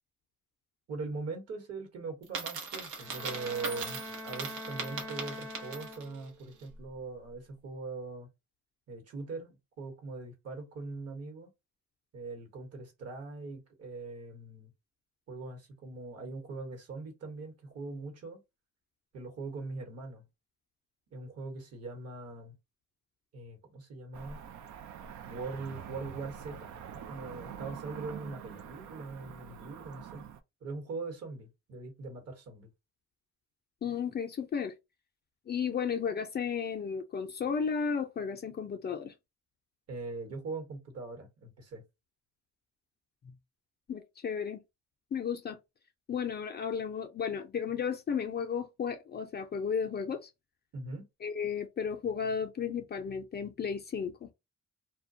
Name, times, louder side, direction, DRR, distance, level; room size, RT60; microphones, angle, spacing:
voice 1, 0.9-8.3 8.9-11.5 12.1-14.7 15.3-18.4 19.1-20.2 21.1-22.5 23.3-24.4 25.3-30.3 30.6-32.7 39.9-41.8 50.7-51.1, right 3 dB, 55° right, 1.0 m, -41 dB
Coin (dropping), 2.2-6.2, right 5 dB, 90° right, 0.8 m, -39 dB
Bowed string instrument, 3.0-6.5, left 1 dB, 10° right, 0.6 m, -44 dB
Cricket / Motor vehicle (road), 24.1-30.4, right 8 dB, 70° right, 0.5 m, -45 dB
voice 2, 33.8-34.7 35.5-39.1 43.9-44.6 45.1-45.6 46.1-50.3 51.2-54.3, left 6 dB, 35° left, 0.4 m, -34 dB
2.3 x 2.2 x 2.6 m
cardioid pair, 90°, 30 cm